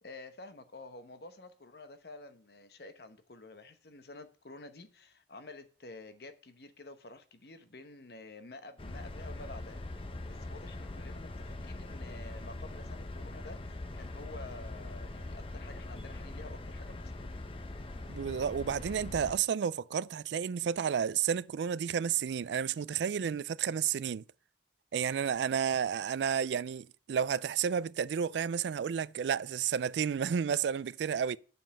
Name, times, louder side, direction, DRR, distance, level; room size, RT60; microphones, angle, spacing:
voice 1, 0.0-17.5, left 2 dB, 60° left, 1.0 m, -50 dB
sound 1, 8.8-19.4, left 2 dB, 30° left, 0.7 m, -42 dB
voice 2, 18.1-24.2 24.9-31.4, right 7 dB, 80° right, 0.3 m, -31 dB
7.0 x 5.5 x 7.3 m
head